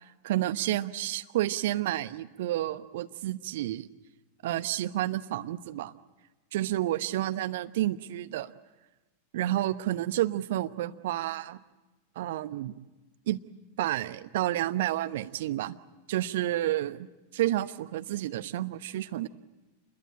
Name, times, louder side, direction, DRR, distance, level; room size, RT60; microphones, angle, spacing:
voice 1, 0.2-3.9 4.4-5.9 6.5-8.5 9.3-11.6 12.2-12.8 13.3-13.4 13.8-15.8 16.1-17.1 17.3-19.3, right 14 dB, 55° right, 11 dB, 1.0 m, -30 dB
27.5 x 21.5 x 8.9 m, 1.1 s
figure-of-eight pair, 90°, 0 cm